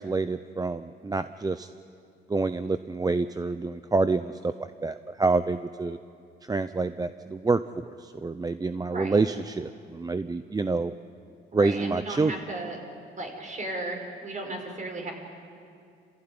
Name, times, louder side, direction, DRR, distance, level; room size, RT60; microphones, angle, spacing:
voice 1, 0.0-1.7 2.3-6.0 6.4-10.9 11.5-12.3, right 3 dB, 20° right, 11 dB, 0.6 m, -27 dB
voice 2, 8.9-9.2 11.5-12.8 13.1-15.1, right 2 dB, 40° right, 2 dB, 5.5 m, -35 dB
28.5 x 15.5 x 9.8 m, 2.4 s
cardioid pair, 90°, 20 cm